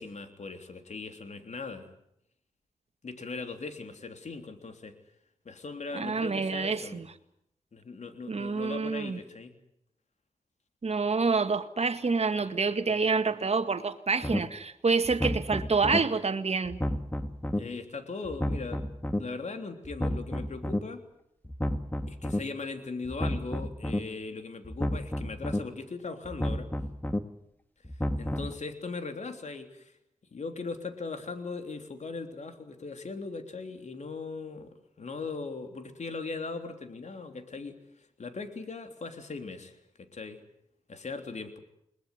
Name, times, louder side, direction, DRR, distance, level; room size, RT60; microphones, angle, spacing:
voice 1, 0.0-1.9 3.0-4.9 5.5-7.0 7.7-9.5 17.6-18.9 19.1-21.0 22.1-26.7 28.2-29.9 30.3-37.8 38.2-40.4 40.9-41.6, left 4 dB, 60° left, 3.4 m, -39 dB
voice 2, 5.9-7.1 8.3-9.2 10.8-16.8, right 4 dB, 50° right, 1.9 m, -27 dB
sound 1, 14.2-14.4 15.0-16.0 16.6-17.6 18.2-19.2 19.8-20.8 21.4-22.4 23.0-24.0 24.6-25.6 26.2-27.2 27.8-28.5, left 1 dB, 15° left, 2.1 m, -31 dB
21.5 x 21.0 x 9.7 m
cardioid pair, 40°, 13 cm